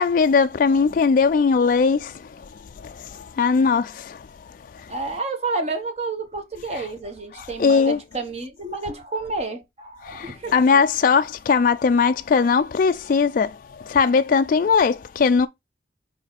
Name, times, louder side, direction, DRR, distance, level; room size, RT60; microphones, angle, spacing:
voice 1, 0.0-4.9 6.7-6.9 7.3-8.0 10.0-15.5, left 5 dB, 50° left, 0.3 m, -20 dB
voice 2, 4.9-10.6, right 3 dB, 35° right, 1.4 m, -30 dB
5.2 x 4.3 x 4.1 m
head